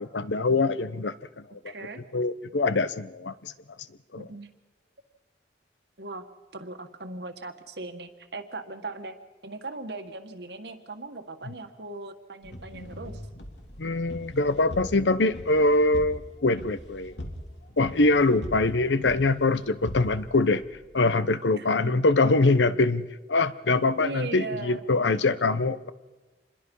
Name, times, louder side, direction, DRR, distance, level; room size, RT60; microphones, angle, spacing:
voice 1, 0.0-1.7 2.1-3.5 4.1-4.3 13.8-17.2 17.8-20.6 20.9-25.9, left 2 dB, 90° left, 14 dB, 0.9 m, -24 dB
voice 2, 1.7-2.0 4.2-4.5 6.0-6.2 6.5-9.2 9.4-13.2 21.5-22.0 22.3-22.6 24.0-24.8, right 2 dB, 65° right, 7 dB, 1.8 m, -38 dB
sound 1, 12.4-21.1, left 1 dB, 75° left, 2.9 m, -41 dB
26.5 x 21.0 x 5.5 m, 1.2 s
head